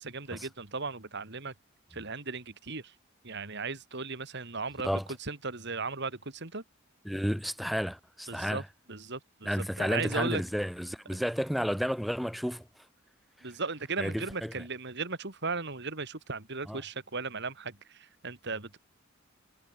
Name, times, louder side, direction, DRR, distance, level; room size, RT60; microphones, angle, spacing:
voice 1, 0.0-1.5 1.9-2.9 3.2-4.9 5.3-6.6 8.3-8.6 8.9-9.5 9.8-10.4 13.4-18.8, right 4 dB, 60° right, 3.0 m, -36 dB
voice 2, 7.0-8.7 9.4-12.7 13.4-13.5 14.0-14.6 16.7-16.8, equal, ahead, 2.2 m, -32 dB
head